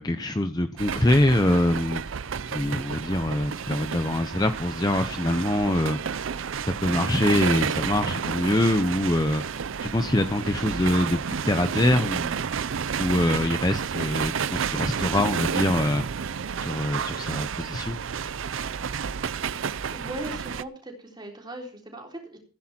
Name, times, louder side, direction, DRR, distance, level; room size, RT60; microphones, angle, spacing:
voice 1, 0.0-2.0 2.5-6.0 6.8-9.4 9.8-12.4 13.0-16.1 16.6-18.0, left 1 dB, 20° left, 8 dB, 0.7 m, -24 dB
sound 1, 0.8-20.6, right 6 dB, 65° right, 0.5 m, -31 dB
voice 2, 19.9-22.4, right 1 dB, 20° right, 0 dB, 3.8 m, -38 dB
16.0 x 10.0 x 4.4 m, 0.39 s
head